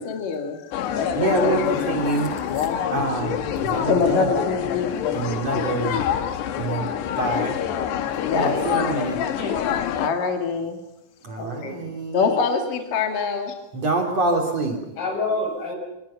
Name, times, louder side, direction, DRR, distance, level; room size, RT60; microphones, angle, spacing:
voice 1, 0.0-1.6 2.7-2.9 3.8-5.0 8.2-8.6 10.0-10.8 11.3-11.4 12.1-13.5, left 5 dB, 50° left, 3 dB, 3.5 m, -25 dB
sound 1, 0.7-10.1, left 9 dB, 70° left, 3.3 m, -26 dB
voice 2, 1.1-2.3 2.6-2.7 2.9-4.3 5.1-6.0 6.6-6.9 7.2-7.6 8.3-9.2 11.2-12.2 13.7-14.8, right 2 dB, 35° right, 1 dB, 3.8 m, -25 dB
voice 3, 9.3-9.7 11.4-11.8 12.3-12.6 13.3-13.4 15.0-15.8, left 2 dB, 85° left, 1 dB, 10.0 m, -29 dB
28.5 x 27.0 x 5.8 m, 0.91 s
omnidirectional pair, 5.5 m